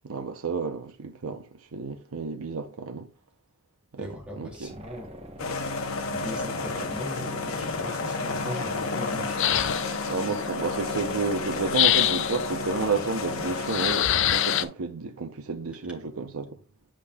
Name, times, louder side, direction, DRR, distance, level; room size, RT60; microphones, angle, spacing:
voice 1, 0.0-1.5 1.7-3.1 3.9-4.7 10.1-16.6, right 4 dB, 80° right, 0.6 m, -31 dB
voice 2, 4.0-5.5 6.1-9.7, left 1 dB, 5° right, 2.3 m, -39 dB
sound 1, 4.6-14.5, right 1 dB, 30° right, 0.9 m, -48 dB
sound 2, 5.4-14.6, left 3 dB, 75° left, 1.0 m, -31 dB
sound 3, 9.4-10.1 11.7-12.5 13.7-14.6, left 12 dB, 60° left, 0.4 m, -24 dB
10.0 x 5.2 x 2.2 m
head